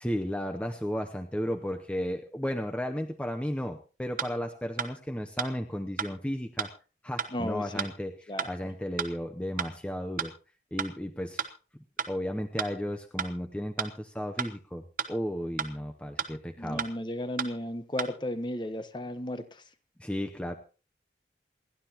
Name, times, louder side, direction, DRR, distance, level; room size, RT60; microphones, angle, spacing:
voice 1, 0.0-6.7 7.0-10.3 10.7-11.5 12.1-16.8 20.0-20.6, equal, 5° left, 0.7 m, -34 dB
sound 1, 4.2-4.3 4.8-4.9 5.4-5.5 6.0-6.1 6.6-6.7 7.2-7.3 7.8-7.9 8.4-8.5 9.0-9.1 9.6-9.7 10.2-10.3 10.8-10.9 11.4-11.5 12.0-12.1 12.6-12.7 13.2-13.3 13.8-13.9 14.4-14.5 15.0-15.1 15.6-15.7 16.2-16.3 16.8-16.9 17.4-17.5 18.0-18.1, right 6 dB, 50° right, 1.2 m, -31 dB
voice 2, 7.3-7.9 8.3-8.5 16.6-19.6, left 1 dB, 25° left, 1.1 m, -34 dB
28.0 x 11.5 x 3.0 m
head